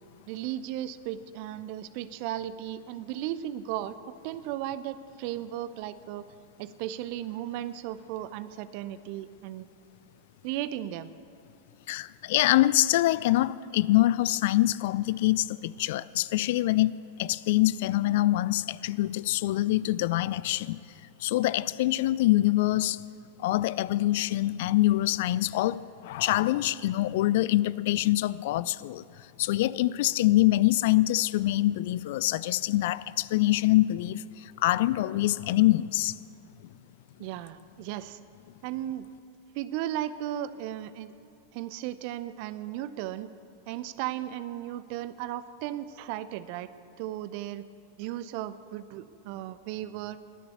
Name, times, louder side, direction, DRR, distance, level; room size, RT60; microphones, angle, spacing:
voice 1, 0.3-6.3 6.6-9.7 10.4-11.1 37.2-38.2 38.6-39.1 39.5-41.1 41.5-43.3 43.7-46.7 47.0-47.6 48.0-50.2, right 12 dB, 45° right, 0.6 m, -35 dB
voice 2, 11.9-20.8 21.2-23.0 23.4-29.0 29.4-36.1 36.6-36.7, left 16 dB, 50° left, 0.4 m, -25 dB
20.5 x 6.9 x 8.2 m
figure-of-eight pair, 90°, 0 cm